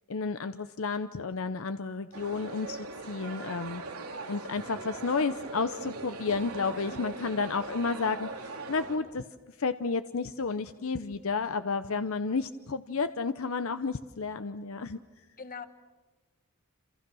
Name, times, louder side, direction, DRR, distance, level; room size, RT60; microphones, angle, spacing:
voice 1, 0.1-3.8 4.3-8.3 8.7-9.2 9.6-15.0, left 4 dB, 70° left, 11 dB, 0.7 m, -31 dB
sound 1, 2.1-9.0, right 3 dB, 90° right, 3.3 m, -40 dB
voice 2, 6.9-7.3 15.4-15.7, left 4 dB, 40° left, 10 dB, 1.6 m, -43 dB
28.0 x 28.0 x 6.3 m, 1.2 s
head